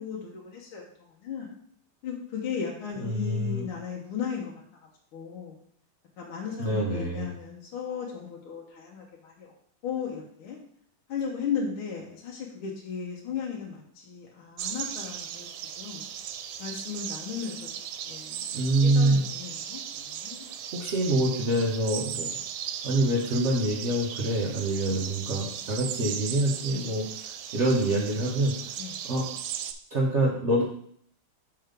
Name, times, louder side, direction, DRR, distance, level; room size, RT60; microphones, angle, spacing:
voice 1, 0.0-1.5 2.0-4.5 5.1-5.6 6.2-9.5 9.8-10.6 11.1-16.0 16.6-17.7 18.0-20.5 28.8-28.9, left 6 dB, 85° left, -2 dB, 1.8 m, -36 dB
voice 2, 3.0-3.7 6.6-7.3 18.5-19.3 20.7-22.4 22.8-27.0 27.5-28.6 29.0-29.3 29.9-30.6, right 1 dB, 60° right, -2 dB, 0.7 m, -25 dB
sound 1, 14.6-29.7, right 9 dB, 85° right, 1.5 m, -37 dB
5.8 x 4.4 x 5.1 m, 0.63 s
omnidirectional pair, 2.3 m